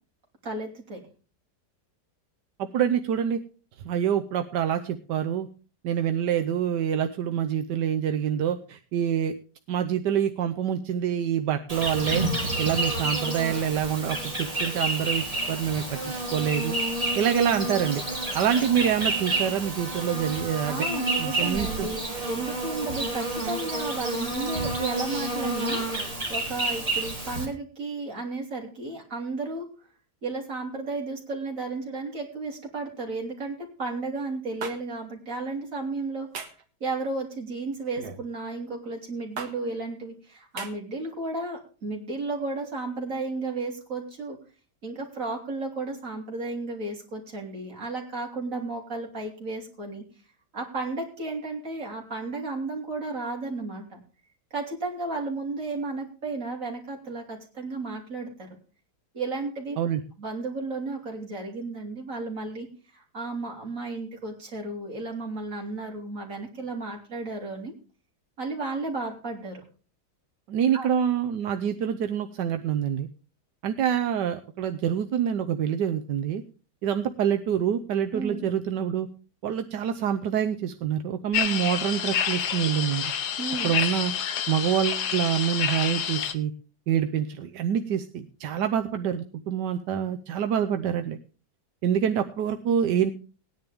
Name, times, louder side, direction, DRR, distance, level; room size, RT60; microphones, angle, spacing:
voice 1, 0.4-1.0 20.7-22.0 22.3-29.7 30.2-36.3 36.8-44.4 44.8-50.0 50.5-54.0 54.5-58.5 59.1-59.8 60.2-62.7 62.9-67.7 68.4-69.7 70.7-70.9 78.1-78.5 83.4-83.8, right 3 dB, 50° right, 0 dB, 3.8 m, -33 dB
voice 2, 2.6-3.4 3.8-5.5 5.8-9.3 9.7-12.2 12.6-16.0 16.3-16.7 17.1-18.0 18.3-20.9 21.2-21.9 59.8-60.0 70.5-73.1 73.6-76.4 76.8-79.1 79.4-83.1 83.6-84.1 84.5-86.5 86.9-91.2 91.8-93.1, right 9 dB, 85° right, 7 dB, 1.4 m, -26 dB
Insect, 11.7-27.4, right 2 dB, 20° right, 3.3 m, -29 dB
sound 1, 34.6-34.8 36.3-36.6 37.9-38.2 39.4-39.5 40.6-40.7, right 5 dB, 70° right, 2.0 m, -35 dB
sound 2, 81.3-86.3, left 8 dB, 70° left, 1.6 m, -28 dB
18.0 x 10.5 x 3.5 m, 0.37 s
omnidirectional pair, 1.8 m